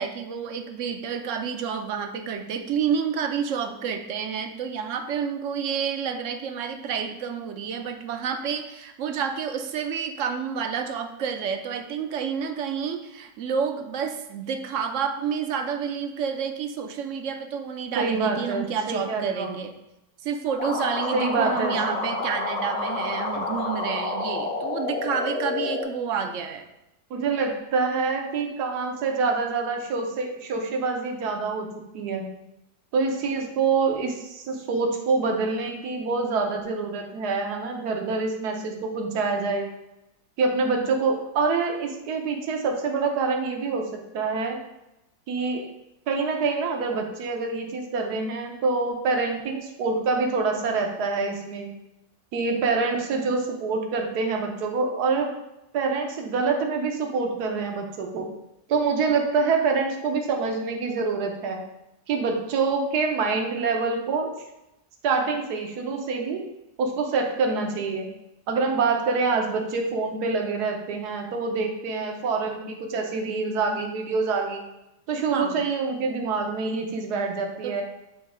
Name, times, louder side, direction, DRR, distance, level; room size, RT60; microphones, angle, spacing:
voice 1, 0.0-19.7 20.2-26.6 75.3-75.7 77.6-77.8, right 7 dB, 65° right, 7 dB, 0.8 m, -29 dB
voice 2, 18.0-19.5 21.1-22.1 27.1-31.7 31.9-32.3 32.9-39.7 40.4-44.6 45.3-45.7 46.1-51.7 52.3-55.3 55.7-58.3 58.7-61.6 62.1-64.3 65.0-66.4 66.8-68.1 68.5-74.6 75.1-77.8, right 4 dB, 80° right, 2 dB, 1.5 m, -26 dB
sound 1, 20.6-25.8, left 2 dB, 70° left, 1.7 m, -29 dB
8.3 x 3.1 x 4.9 m, 0.91 s
omnidirectional pair, 1.7 m